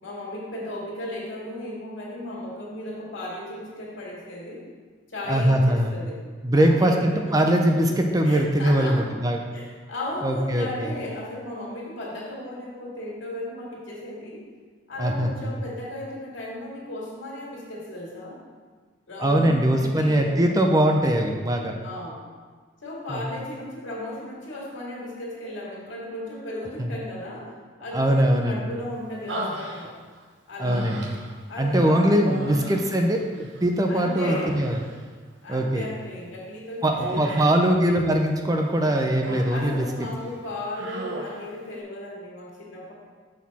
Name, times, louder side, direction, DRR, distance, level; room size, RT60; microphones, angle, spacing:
voice 1, 0.0-4.6 5.1-6.2 6.6-7.4 8.2-9.1 9.5-14.4 14.9-18.4 19.1-20.7 21.8-22.2 22.8-27.5 27.8-29.9 30.5-30.9 31.5-32.1 32.5-32.7 33.9-34.5 35.4-37.5 39.5-42.9, left 1 dB, 75° left, -4 dB, 2.2 m, -35 dB
voice 2, 5.3-6.0 6.4-9.4 10.2-10.9 15.0-15.6 19.2-21.7 23.1-23.2 26.8-26.9 27.9-28.7 30.6-31.1 31.6-34.8 35.5-35.9 36.8-39.9, right 1 dB, 20° right, 3 dB, 0.5 m, -22 dB
Human voice, 29.3-30.2 30.6-31.4 32.2-33.6 33.9-35.0 37.0-37.7 38.7-39.7 40.1-40.3 40.7-41.5, right 1 dB, 70° right, 0.9 m, -35 dB
6.4 x 6.1 x 4.2 m, 1.5 s
head